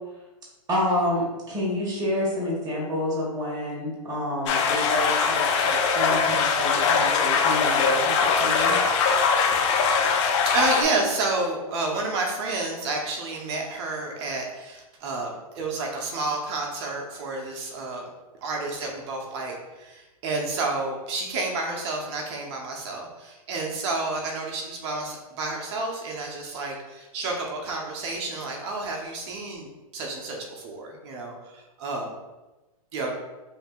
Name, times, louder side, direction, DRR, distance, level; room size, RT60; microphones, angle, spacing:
voice 1, 0.7-8.7, left 1 dB, 20° right, -5 dB, 1.5 m, -29 dB
sound 1, 4.5-10.8, left 5 dB, 50° left, 0.7 m, -22 dB
voice 2, 10.1-18.0 18.4-32.1 32.9-33.2, right 3 dB, 45° right, 0 dB, 0.9 m, -30 dB
6.2 x 2.7 x 2.4 m, 1.1 s
hypercardioid pair, 130°, 20 cm